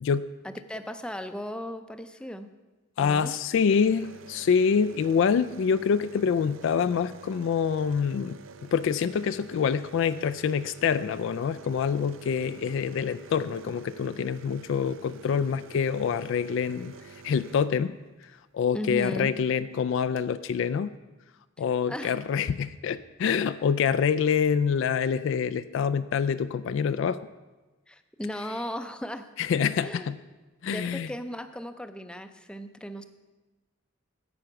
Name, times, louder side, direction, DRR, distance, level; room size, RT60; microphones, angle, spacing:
voice 1, 0.4-2.5 3.0-3.3 18.7-19.3 21.9-22.2 27.9-29.3 29.8-30.1 30.7-33.0, equal, 5° left, 9 dB, 0.5 m, -36 dB
voice 2, 3.0-17.9 18.5-20.9 21.6-27.2 29.4-30.2 30.6-31.1, left 6 dB, 70° left, 14 dB, 0.3 m, -26 dB
sound 1, 3.7-18.3 19.6-19.7 19.9-20.3, right 5 dB, 75° right, 0.5 m, -49 dB
9.8 x 7.8 x 5.9 m, 1.2 s
head